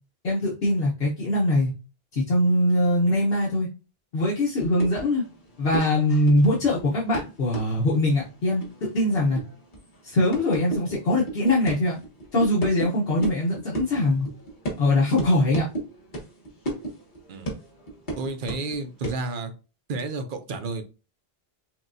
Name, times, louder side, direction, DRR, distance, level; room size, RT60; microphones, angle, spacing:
voice 1, 0.2-1.7 2.1-3.7 4.1-5.2 5.6-9.4 10.0-11.9 12.3-14.3 14.8-15.7, left 1 dB, 70° left, -4 dB, 1.2 m, -22 dB
sound 1, 4.6-12.9 13.2-18.8 19.0-19.3, right 2 dB, 50° left, 1.3 m, -35 dB
voice 2, 18.2-19.5 19.9-20.8, right 3 dB, 60° right, 7 dB, 0.8 m, -31 dB
6.0 x 2.2 x 2.6 m, 0.32 s
omnidirectional pair, 1.1 m